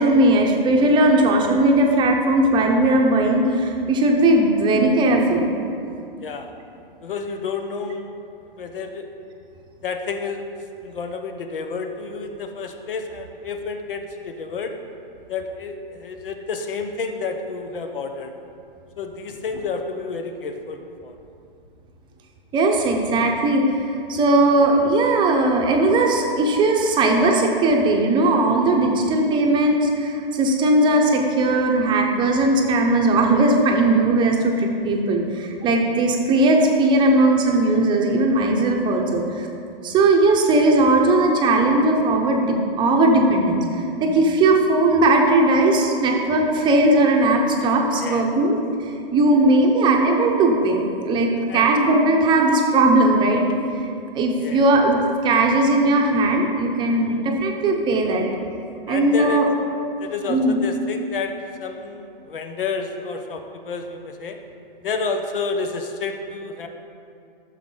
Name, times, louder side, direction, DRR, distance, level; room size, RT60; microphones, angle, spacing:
voice 1, 0.0-5.5 22.5-39.5 39.8-48.6 49.1-53.5 54.1-58.3 58.9-59.5 60.3-60.6, right 2 dB, 15° right, 1 dB, 0.9 m, -18 dB
voice 2, 6.2-6.5 7.0-8.2 8.5-9.1 9.8-10.4 10.8-14.7 15.3-18.3 19.0-21.2 48.0-48.5 51.5-51.7 54.4-54.7 58.9-59.4 60.0-61.3 61.6-64.4 64.8-66.7, left 4 dB, 65° left, 5 dB, 1.2 m, -30 dB
13.0 x 6.7 x 3.9 m, 2.5 s
hypercardioid pair, 135°, 29 cm